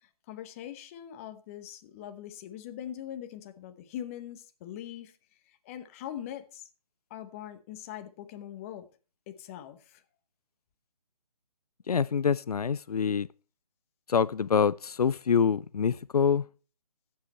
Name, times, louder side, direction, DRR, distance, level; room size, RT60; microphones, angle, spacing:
voice 1, 0.0-5.1 5.5-6.7 7.1-8.9 9.3-10.0, left 11 dB, 20° left, 1.0 m, -42 dB
voice 2, 11.9-13.3 14.1-16.5, left 6 dB, 80° left, 0.4 m, -25 dB
13.0 x 7.8 x 4.3 m
figure-of-eight pair, 145°, 19 cm